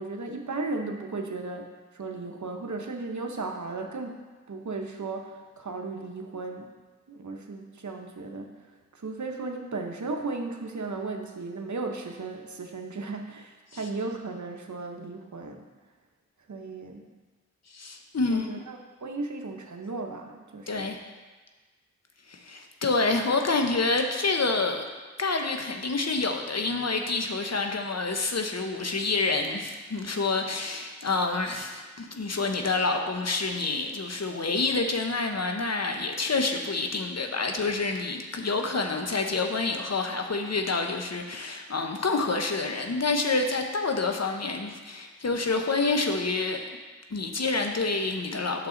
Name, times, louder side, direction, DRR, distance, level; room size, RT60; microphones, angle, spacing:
voice 1, 0.0-4.2 4.5-6.7 7.1-8.5 8.9-15.6 16.5-17.0 18.3-21.0, right 3 dB, 75° right, 3 dB, 0.9 m, -35 dB
voice 2, 17.7-18.5 20.7-21.0 22.3-24.8 25.2-46.8 47.1-48.7, left 3 dB, 60° left, 4 dB, 0.9 m, -28 dB
8.8 x 6.6 x 3.9 m, 1.3 s
wide cardioid pair, 40°, 29 cm